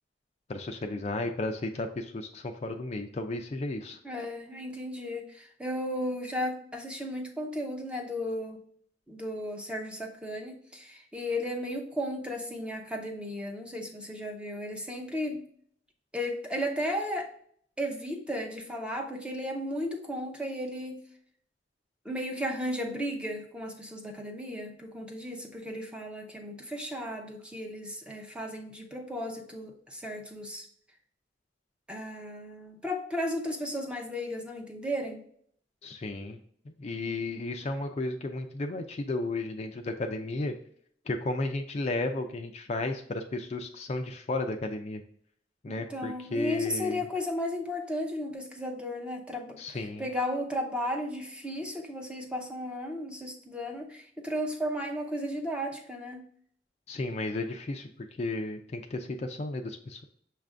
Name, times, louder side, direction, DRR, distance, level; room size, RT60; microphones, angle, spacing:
voice 1, 0.5-4.0 35.8-36.4 36.7-40.6 41.1-45.0 45.6-47.1 49.6-50.1 56.9-60.0, left 2 dB, 35° left, 5 dB, 0.4 m, -33 dB
voice 2, 4.0-8.6 9.1-15.4 16.1-17.3 17.8-21.0 22.0-30.7 31.9-35.2 45.7-49.6 50.0-56.2, equal, 5° right, 2 dB, 0.6 m, -34 dB
6.3 x 2.5 x 3.3 m, 0.62 s
head